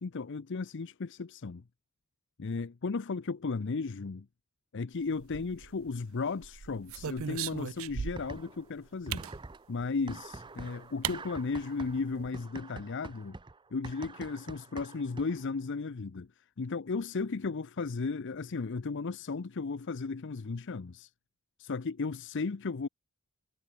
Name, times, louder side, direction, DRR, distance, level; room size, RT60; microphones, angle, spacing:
voice 1, 0.0-1.6 2.4-4.2 4.7-9.3 9.7-13.3 13.7-21.1 21.6-22.9, left 4 dB, 60° left, 0.6 m, -35 dB
sound 1, 5.2-5.9 6.4-8.4 9.1-9.4 10.5-10.6 11.0-11.2 11.5-11.6 11.9-12.3, right 8 dB, 70° right, 0.5 m, -37 dB
sound 2, 8.2-8.8 9.1-15.5, right 3 dB, 20° right, 0.7 m, -46 dB
head